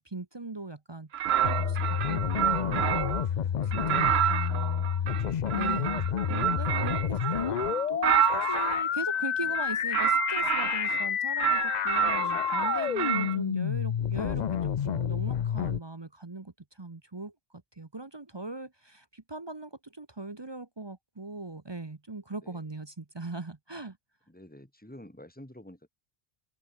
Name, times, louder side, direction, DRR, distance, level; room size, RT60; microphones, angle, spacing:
voice 1, 0.0-4.8 5.5-7.6 7.9-17.3 17.8-24.0, right 2 dB, 25° right, 0.9 m, -40 dB
sound 1, 1.1-3.3 3.7-8.8 9.5-11.1 11.4-13.4, right 10 dB, 75° right, 1.0 m, -29 dB
sound 2, 1.4-15.8, left 9 dB, 50° left, 0.6 m, -29 dB
voice 2, 3.8-4.2 13.2-13.4 22.3-22.6 24.3-25.9, left 1 dB, 10° left, 3.5 m, -50 dB
open air
omnidirectional pair, 1.1 m